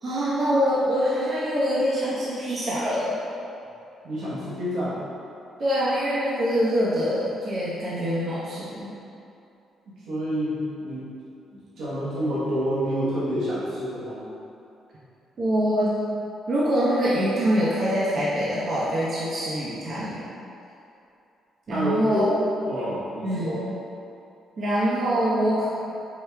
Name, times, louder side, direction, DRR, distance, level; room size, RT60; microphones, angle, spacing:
voice 1, 0.0-3.2 5.6-8.9 15.4-16.0 16.5-20.2 21.7-22.3 23.2-23.7 24.6-25.7, equal, 50° right, -9 dB, 0.7 m, -24 dB
voice 2, 4.0-5.0 9.9-11.1 11.5-14.2 21.7-22.2 22.7-23.6, equal, 70° right, -10 dB, 1.0 m, -28 dB
4.7 x 2.3 x 3.3 m, 2.7 s
cardioid pair, 90°, 0 cm